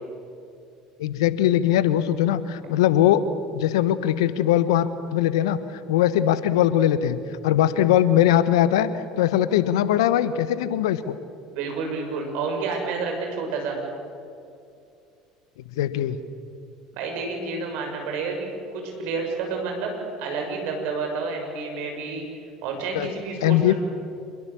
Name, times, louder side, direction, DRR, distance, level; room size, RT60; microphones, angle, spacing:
voice 1, 1.0-3.2 3.5-5.6 5.9-7.2 7.4-11.2 15.8-16.2 22.9-23.1 23.4-23.7, left 11 dB, 75° left, 14 dB, 1.1 m, -21 dB
voice 2, 11.5-13.8 16.9-19.9 20.2-22.2 22.6-23.8, right 4 dB, 65° right, 2 dB, 6.6 m, -29 dB
27.0 x 22.5 x 7.2 m, 2.5 s
hypercardioid pair, 70°, 3 cm